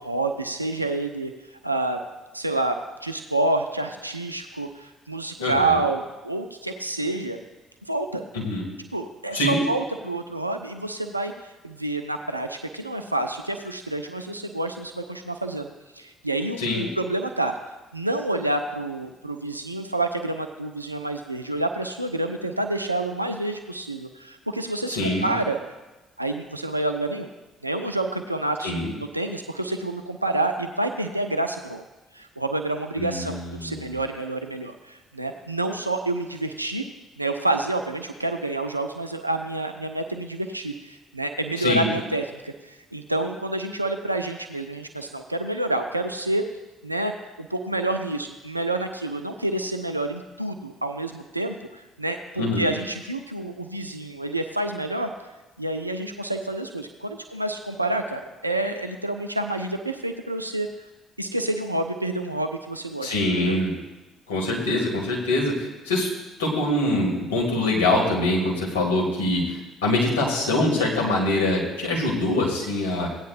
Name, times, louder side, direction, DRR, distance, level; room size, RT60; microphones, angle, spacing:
voice 1, 0.0-1.3 1.6-2.0 2.3-2.7 3.0-7.4 7.9-8.2 8.9-11.3 11.6-17.5 17.9-25.6 26.2-27.3 27.6-28.7 29.1-31.8 32.1-36.8 37.2-46.4 46.8-47.1 47.4-55.1 55.6-60.7 61.2-63.2 63.4-63.6, right 2 dB, 90° right, 6 dB, 0.4 m, -28 dB
voice 2, 5.4-5.8 8.3-8.7 9.3-9.6 16.6-16.9 24.9-25.3 28.6-28.9 33.0-34.0 41.6-41.9 52.4-52.7 63.0-63.7 64.3-66.1 66.4-73.1, left 1 dB, 75° left, -2 dB, 1.8 m, -24 dB
16.5 x 9.4 x 2.4 m, 1.1 s
figure-of-eight pair, 50°, 0 cm